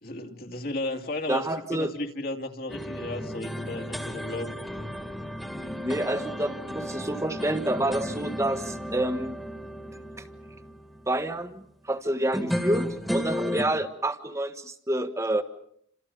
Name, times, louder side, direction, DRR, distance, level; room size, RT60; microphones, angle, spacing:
voice 1, 0.0-4.6, left 2 dB, 55° left, 5 dB, 2.5 m, -34 dB
voice 2, 1.3-1.9 5.8-9.4 11.1-15.4, right 1 dB, 15° right, 9 dB, 1.4 m, -28 dB
sound 1, 2.7-11.3 12.3-13.7, equal, ahead, 2.1 m, -34 dB
29.5 x 27.0 x 5.3 m, 0.67 s
head